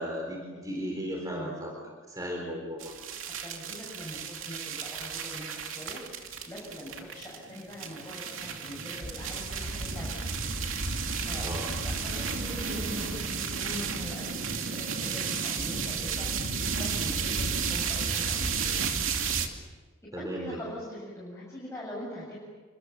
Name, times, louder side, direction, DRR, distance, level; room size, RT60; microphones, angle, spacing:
voice 1, 0.0-1.8 2.1-2.9 11.4-11.7 20.1-20.6, equal, 15° right, 0 dB, 4.2 m, -35 dB
sound 1, 2.8-19.5, right 5 dB, 75° right, 2.7 m, -32 dB
voice 2, 3.2-10.3 10.7-19.1 20.0-22.4, left 1 dB, 15° left, -5 dB, 7.7 m, -43 dB
29.5 x 25.5 x 7.4 m, 1.4 s
head